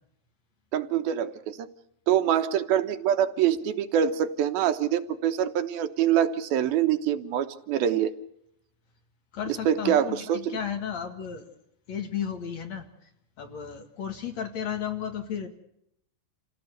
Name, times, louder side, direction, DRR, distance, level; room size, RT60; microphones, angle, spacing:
voice 1, 0.7-1.7 2.1-8.1 9.7-10.6, right 10 dB, 75° right, 9 dB, 2.9 m, -25 dB
voice 2, 9.3-11.5 11.9-13.1 13.4-15.5, left 8 dB, 55° left, 6 dB, 2.8 m, -34 dB
28.0 x 16.5 x 8.0 m, 0.76 s
omnidirectional pair, 4.4 m